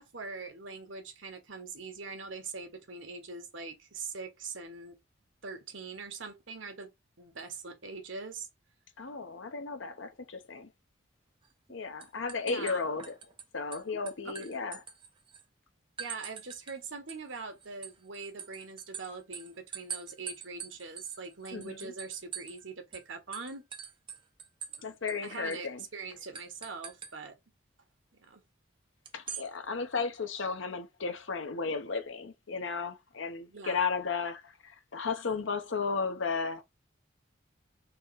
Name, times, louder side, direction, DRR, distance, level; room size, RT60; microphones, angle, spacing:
voice 1, 0.0-5.0 5.4-6.9 7.2-8.5 12.5-12.8 14.2-14.5 16.0-23.6 24.8-24.9 25.2-27.4 28.3-28.4 33.5-33.9, right 4 dB, 85° right, 1.4 m, -42 dB
voice 2, 9.0-10.7 11.7-13.1 13.5-14.8 21.5-21.9 24.8-25.8 29.1-36.6, left 5 dB, 85° left, 0.9 m, -34 dB
sound 1, 11.4-11.7 12.0-13.4 13.7-15.4 16.0-16.8 17.1-22.6 22.9-23.0 23.3-24.8 25.1-25.2 25.5-25.7 26.3-27.1 29.1-29.5, right 7 dB, 25° right, 0.7 m, -43 dB
4.1 x 3.0 x 4.1 m
head